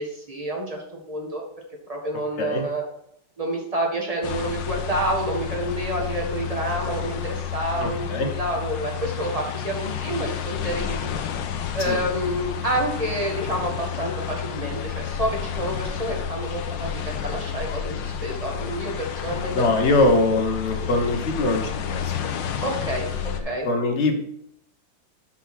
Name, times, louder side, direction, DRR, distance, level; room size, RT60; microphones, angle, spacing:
voice 1, 0.0-1.4 1.9-2.8 3.4-11.2 11.7-19.6 20.7-20.9 22.6-23.1 23.4-23.7, right 1 dB, 20° right, 0 dB, 1.4 m, -28 dB
sound 1, 4.2-23.4, left 8 dB, 75° left, 1.4 m, -30 dB
voice 2, 7.8-8.3 11.9-12.0 19.5-22.1 23.2-24.3, left 2 dB, 40° left, 4 dB, 1.2 m, -23 dB
6.2 x 5.5 x 5.9 m, 0.74 s
omnidirectional pair, 2.2 m